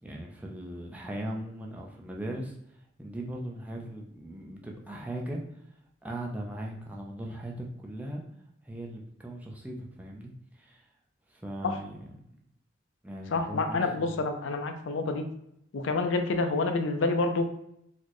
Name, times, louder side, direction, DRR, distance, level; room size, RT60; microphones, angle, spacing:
voice 1, 0.0-5.6 6.0-8.2 8.6-10.9 11.3-12.0 13.0-14.2, right 1 dB, 10° right, -1 dB, 0.4 m, -39 dB
voice 2, 13.3-15.2 15.7-17.5, left 3 dB, 70° left, 6 dB, 0.4 m, -28 dB
4.1 x 2.1 x 2.9 m, 0.77 s
head